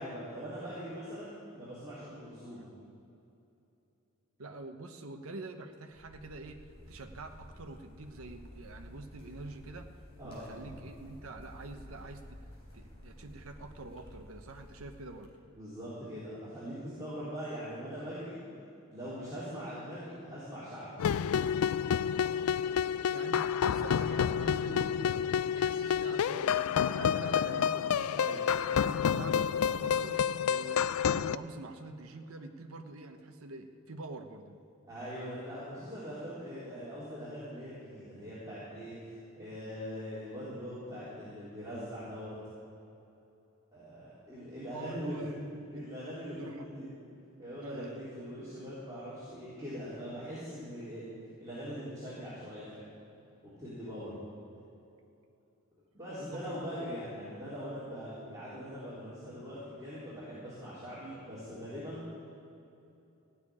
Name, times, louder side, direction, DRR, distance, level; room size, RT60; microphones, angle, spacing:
voice 1, 0.0-2.6 10.2-10.5 15.5-18.4 18.9-20.9 28.1-28.4 34.9-42.4 43.7-45.4 45.7-46.9 47.4-51.0 51.4-52.8 53.4-54.2 55.9-62.0, equal, 15° right, -12 dB, 3.7 m, -42 dB
voice 2, 4.4-6.6 6.9-9.9 10.2-12.2 12.7-15.3 22.6-25.2 25.5-28.2 28.7-34.6 44.6-45.4 45.7-46.0 46.4-46.7 47.6-48.3 56.2-56.9, right 2 dB, 80° right, 5 dB, 1.0 m, -46 dB
sound 1, 5.9-15.3, left 1 dB, 25° left, 3.8 m, -52 dB
sound 2, 21.0-31.4, left 8 dB, 85° left, 0.3 m, -29 dB
15.5 x 6.8 x 9.9 m, 2.8 s
head